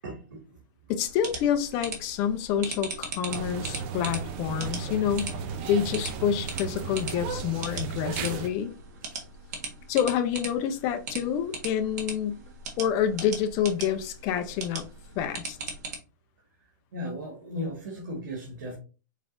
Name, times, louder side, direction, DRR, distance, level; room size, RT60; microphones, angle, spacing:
voice 1, 0.0-0.6 7.9-8.4 9.0-9.5 16.6-18.8, equal, 75° right, 1.9 m, -38 dB
voice 2, 0.9-5.4 5.7-8.7 9.9-12.4 12.8-14.9 15.2-15.6, left 9 dB, 30° left, 0.6 m, -28 dB
sound 1, 1.0-16.0, right 4 dB, 55° right, 1.4 m, -40 dB
sound 2, 3.3-8.5, right 6 dB, 35° right, 0.6 m, -35 dB
4.8 x 4.0 x 2.6 m
hypercardioid pair, 155°, 11 cm